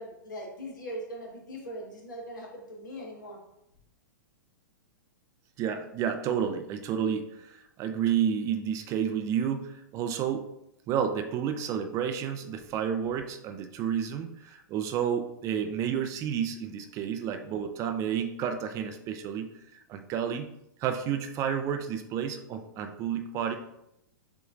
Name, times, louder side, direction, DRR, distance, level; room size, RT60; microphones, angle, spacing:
voice 1, 0.0-3.4, equal, 70° left, -1 dB, 1.5 m, -40 dB
voice 2, 5.6-10.5 10.9-19.5 19.9-20.5 20.8-23.6, right 8 dB, 30° right, 6 dB, 0.5 m, -30 dB
6.9 x 3.0 x 2.5 m, 0.80 s
figure-of-eight pair, 105°, 11 cm